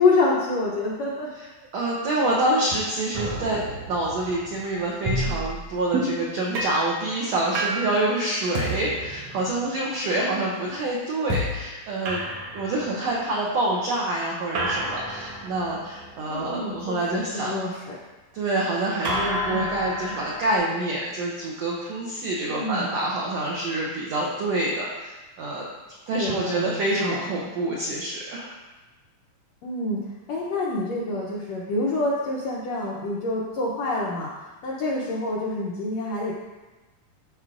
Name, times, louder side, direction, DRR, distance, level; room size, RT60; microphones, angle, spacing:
voice 1, 0.0-1.3 10.2-10.5 16.3-18.0 19.5-19.7 22.5-22.8 26.1-26.8 27.1-27.2 29.6-30.0 30.3-34.3 34.6-36.3, left 2 dB, 80° left, -5 dB, 1.5 m, -26 dB
voice 2, 1.7-12.2 12.5-17.8 18.3-25.7 26.1-28.5, right 2 dB, 85° right, -4 dB, 1.5 m, -27 dB
sound 1, 3.1-6.2 6.5-6.9 7.5-8.0 8.5-9.8 11.3-11.7 12.1-13.2 14.5-16.9 19.0-20.6, right 1 dB, 65° right, 1.7 m, -30 dB
12.5 x 4.7 x 2.5 m, 1.2 s
omnidirectional pair, 4.1 m